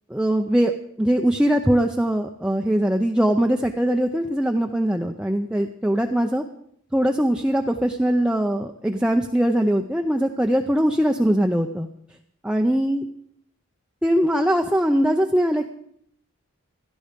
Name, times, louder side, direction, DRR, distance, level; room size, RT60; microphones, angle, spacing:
voice 1, 0.1-0.7 1.0-6.4 6.9-11.9 12.4-13.1 14.0-15.7, equal, 5° right, 3 dB, 0.5 m, -21 dB
17.5 x 12.5 x 5.2 m, 0.69 s
head